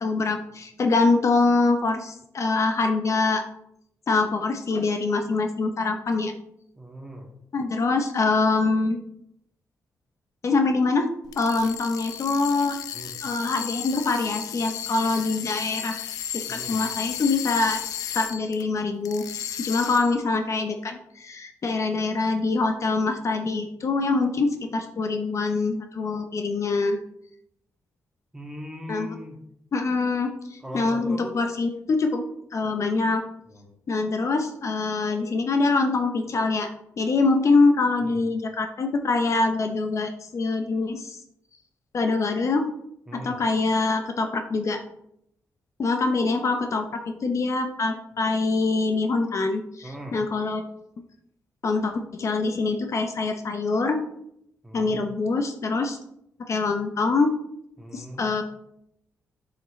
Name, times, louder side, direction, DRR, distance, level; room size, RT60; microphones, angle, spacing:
voice 1, 0.0-3.4 4.1-6.3 7.5-9.0 10.4-11.1 11.4-12.8 13.2-16.1 16.5-17.8 18.1-27.0 28.9-29.1 29.7-32.2 32.5-33.2 33.9-36.7 37.0-41.2 41.9-42.7 43.1-44.8 45.8-50.6 51.6-54.0 54.7-56.0 56.5-57.3 57.9-58.4, left 3 dB, 55° left, 5 dB, 0.8 m, -24 dB
voice 2, 6.8-7.3 12.9-13.1 16.5-16.8 28.3-29.4 30.6-31.4 33.5-33.7 38.0-38.2 43.1-43.4 49.8-50.2 54.6-55.1 57.8-58.2, equal, 5° right, 0 dB, 2.1 m, -39 dB
sound 1, 11.2-18.6 19.0-20.2, left 9 dB, 90° left, 0.5 m, -34 dB
7.0 x 5.8 x 3.2 m, 0.75 s
cardioid pair, 65°, 6 cm